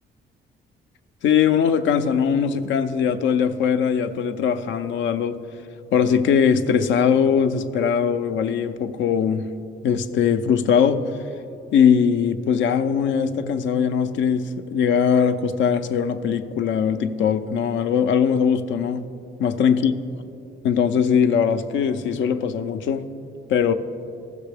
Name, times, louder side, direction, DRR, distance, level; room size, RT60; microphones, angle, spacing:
voice 1, 1.2-5.4 5.9-9.5 9.8-11.0 11.7-19.1 19.4-19.9 20.6-23.0 23.5-23.7, left 7 dB, 70° left, 10 dB, 0.5 m, -20 dB
14.5 x 6.6 x 3.4 m, 2.6 s
cardioid pair, 90°, 20 cm